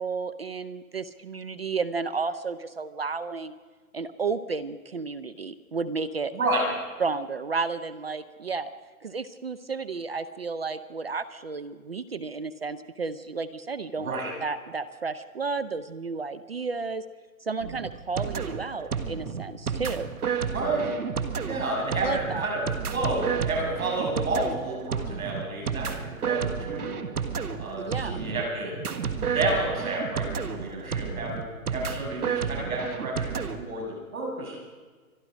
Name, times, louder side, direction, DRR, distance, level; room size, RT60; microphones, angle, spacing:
voice 1, 0.0-3.5 3.9-6.3 7.0-8.7 9.0-14.1 14.4-17.0 17.4-20.1 22.0-22.5 27.9-28.2, right 4 dB, 45° right, 14 dB, 0.5 m, -32 dB
voice 2, 6.3-6.8 14.0-14.3 20.5-21.0 21.4-27.0 27.6-34.6, right 2 dB, 70° right, 0 dB, 6.4 m, -30 dB
sound 1, 17.6-33.6, right 6 dB, 90° right, 1.7 m, -31 dB
25.0 x 11.5 x 5.0 m, 1.4 s
hypercardioid pair, 170°, 43 cm